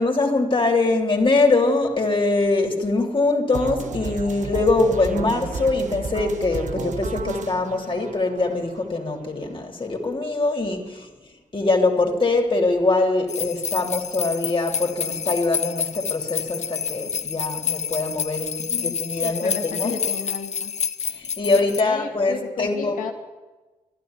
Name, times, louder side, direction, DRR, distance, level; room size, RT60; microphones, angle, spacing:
voice 1, 0.0-11.1 11.5-19.9 21.1-23.0, left 3 dB, 40° left, 3.2 m, -23 dB
sound 1, 3.5-9.5, right 5 dB, 65° right, 1.2 m, -33 dB
sound 2, 13.3-21.8, left 7 dB, 60° left, 0.6 m, -28 dB
voice 2, 19.2-20.7 21.5-23.1, left 5 dB, 90° left, 2.0 m, -33 dB
12.5 x 11.5 x 9.7 m
cardioid pair, 55°, 13 cm